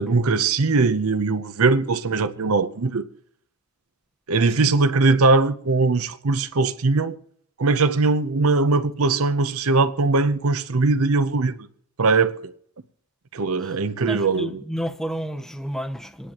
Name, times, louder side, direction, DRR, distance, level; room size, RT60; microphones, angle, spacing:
voice 1, 0.0-3.0 4.3-7.2 7.6-11.7 12.0-12.5 13.3-14.6, right 3 dB, 70° right, 0.7 m, -20 dB
voice 2, 14.1-16.3, equal, ahead, 0.7 m, -31 dB
27.5 x 10.0 x 3.0 m
head